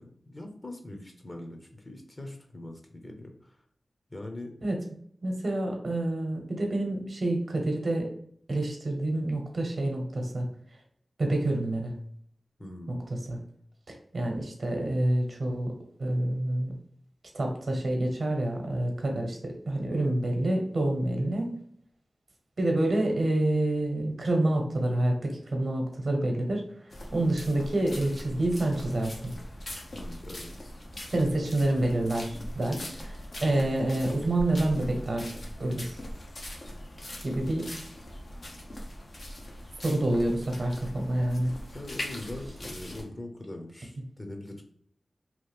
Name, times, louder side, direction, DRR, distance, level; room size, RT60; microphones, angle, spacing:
voice 1, 0.0-3.5 4.1-4.5 12.6-13.0 29.9-30.8 41.7-44.6, left 1 dB, 35° left, 4 dB, 0.8 m, -42 dB
voice 2, 5.2-8.1 8.5-10.4 11.2-12.0 12.9-13.0 13.3-13.4 13.9-15.7 16.0-16.7 17.3-21.5 22.6-26.6 27.1-29.4 31.1-33.2 33.4-35.3 35.6-36.0 37.2-37.7 39.8-41.6, right 1 dB, 65° right, 2 dB, 0.9 m, -28 dB
sound 1, 26.9-43.0, left 1 dB, 65° left, 0.8 m, -41 dB
3.1 x 2.4 x 3.3 m, 0.64 s
cardioid pair, 45°, 0 cm